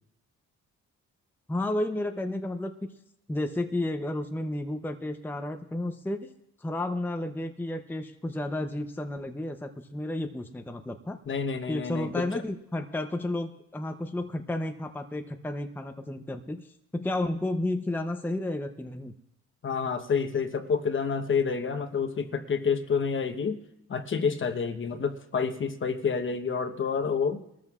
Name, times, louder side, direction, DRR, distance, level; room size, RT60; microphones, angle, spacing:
voice 1, 1.5-2.9 3.3-6.3 6.6-11.2 11.7-16.7 16.9-19.1, left 1 dB, 5° left, 6 dB, 0.7 m, -32 dB
voice 2, 11.3-12.2 19.6-23.6 23.9-27.4, left 5 dB, 40° left, 8 dB, 1.1 m, -28 dB
22.0 x 13.5 x 2.4 m, 0.78 s
cardioid pair, 90°, 30 cm